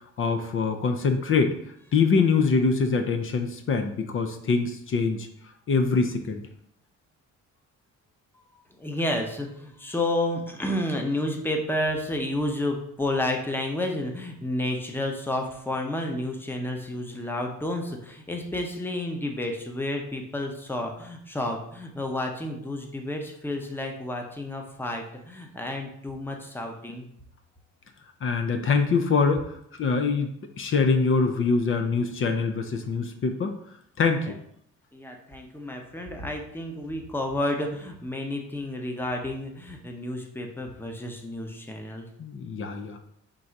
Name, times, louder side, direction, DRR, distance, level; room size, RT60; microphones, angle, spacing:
voice 1, 0.0-1.5 1.9-5.3 5.7-6.4 28.2-30.3 30.6-33.6 34.0-34.4 42.2-43.0, left 4 dB, 45° left, 6 dB, 0.5 m, -24 dB
voice 2, 8.8-27.1 34.2-34.3 34.9-42.1, left 1 dB, 5° left, 2 dB, 0.8 m, -31 dB
3.8 x 2.7 x 4.5 m, 0.70 s
cardioid pair, 90°, 30 cm